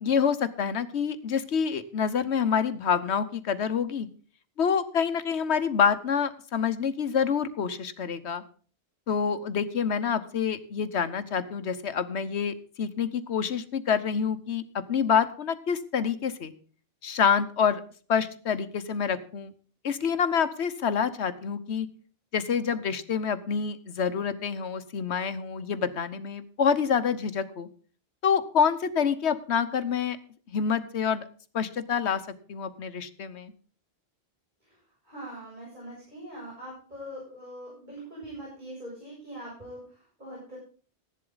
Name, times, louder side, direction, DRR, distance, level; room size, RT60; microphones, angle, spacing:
voice 1, 0.0-4.1 4.6-8.4 9.1-14.6 14.9-16.5 17.0-17.8 18.1-19.5 19.8-21.9 22.3-27.7 28.2-30.2 30.5-31.2 31.5-32.2 32.5-33.5, left 7 dB, 90° left, 12 dB, 1.3 m, -27 dB
voice 2, 35.0-40.6, right 1 dB, 45° right, -5 dB, 7.2 m, -42 dB
15.0 x 11.0 x 3.9 m, 0.41 s
omnidirectional pair, 1.1 m